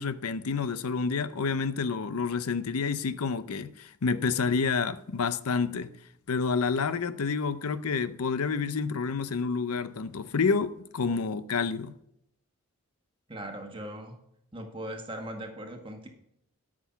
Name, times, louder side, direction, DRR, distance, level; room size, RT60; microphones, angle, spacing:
voice 1, 0.0-5.9 6.3-11.9, left 5 dB, 85° left, 0.6 m, -29 dB
voice 2, 13.3-14.2 14.5-16.1, right 1 dB, 25° right, 1.5 m, -39 dB
12.5 x 6.1 x 5.7 m
head